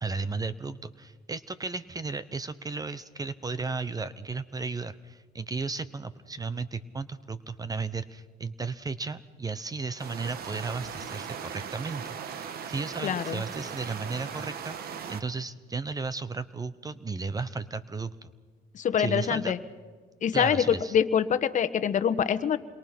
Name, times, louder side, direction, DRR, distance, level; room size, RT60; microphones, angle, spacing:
voice 1, 0.0-12.2 12.7-18.3 19.0-19.5 20.3-21.0, right 4 dB, 20° right, 15 dB, 0.9 m, -34 dB
sound 1, 10.0-15.2, right 7 dB, 65° right, 1.6 m, -38 dB
voice 2, 13.0-13.4 18.7-19.6 20.2-22.6, left 8 dB, 45° left, 12 dB, 1.3 m, -25 dB
28.0 x 22.5 x 6.1 m, 1.4 s
cardioid pair, 110°, 17 cm